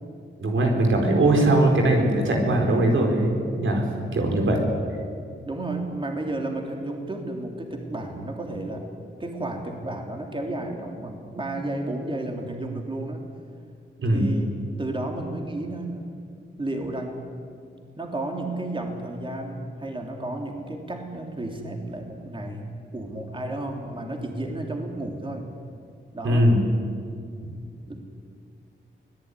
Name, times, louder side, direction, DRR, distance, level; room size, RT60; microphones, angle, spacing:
voice 1, 0.4-4.6 14.0-14.3 26.2-26.6, right 1 dB, 80° right, 1 dB, 4.6 m, -21 dB
voice 2, 5.4-8.9 9.2-13.3 14.1-16.1 16.6-17.2 18.0-25.5 26.1-26.5 27.9-28.0, right 2 dB, 25° right, 2 dB, 3.3 m, -32 dB
24.0 x 18.5 x 9.9 m, 2.3 s
wide cardioid pair, 95°, 20 cm